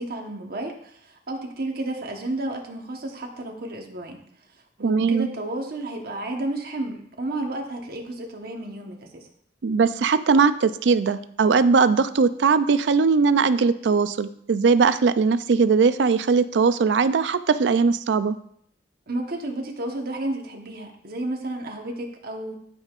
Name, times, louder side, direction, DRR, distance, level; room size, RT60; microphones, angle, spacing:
voice 1, 0.0-4.2 4.8-9.3 19.1-22.5, right 2 dB, 60° right, 2 dB, 1.1 m, -32 dB
voice 2, 4.8-5.3 9.6-18.4, right 5 dB, 75° right, 13 dB, 0.4 m, -20 dB
12.5 x 5.4 x 2.5 m, 0.67 s
head